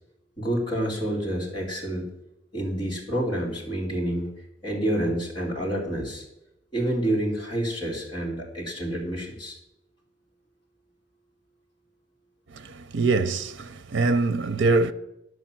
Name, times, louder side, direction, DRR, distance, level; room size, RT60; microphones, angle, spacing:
voice 1, 0.4-2.1 2.5-4.3 4.6-6.2 6.7-9.6, right 1 dB, 25° left, 2.8 m, -28 dB
voice 2, 12.5-14.9, right 3 dB, 85° right, 0.5 m, -24 dB
11.0 x 6.3 x 7.5 m
head